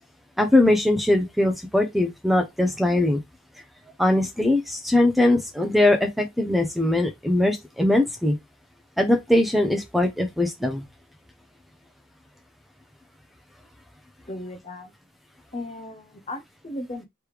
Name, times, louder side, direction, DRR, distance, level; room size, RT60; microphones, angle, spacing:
voice 1, 0.4-3.2 4.0-8.4 9.0-10.8, left 1 dB, ahead, 0.7 m, -21 dB
voice 2, 14.3-14.9 15.5-17.0, left 1 dB, 30° left, 0.8 m, -36 dB
3.3 x 3.3 x 4.7 m
head